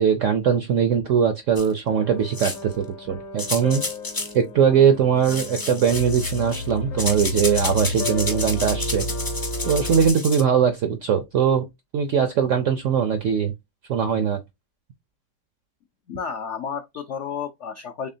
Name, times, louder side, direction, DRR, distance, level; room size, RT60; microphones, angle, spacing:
voice 1, 0.0-3.8 4.3-9.1 9.7-11.7 11.9-13.5 13.9-14.4, right 7 dB, 75° right, 0.7 m, -21 dB
sound 1, 1.6-1.7 2.3-2.7 3.4-4.4 5.2-6.7 7.0-10.4, left 2 dB, 35° left, 0.3 m, -30 dB
sound 2, 1.9-10.1, left 2 dB, 50° left, 1.0 m, -32 dB
voice 2, 16.1-18.1, left 6 dB, 80° left, 0.6 m, -31 dB
4.1 x 3.4 x 2.6 m
omnidirectional pair, 1.9 m